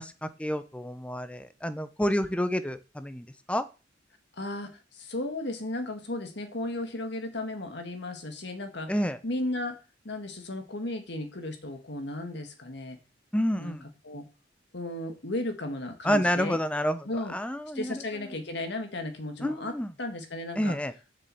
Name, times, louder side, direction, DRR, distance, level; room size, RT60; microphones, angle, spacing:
voice 1, 0.0-3.6 8.9-9.2 13.3-13.8 16.0-18.3 19.4-19.9 20.6-20.9, equal, 5° left, 12 dB, 0.8 m, -29 dB
voice 2, 4.4-8.9 9.2-9.8 10.0-13.0 13.6-13.8 14.0-14.3 14.7-16.6 17.1-17.3 17.7-19.7 20.0-20.8, left 1 dB, 65° left, 6 dB, 1.9 m, -35 dB
6.9 x 6.9 x 7.8 m, 0.32 s
head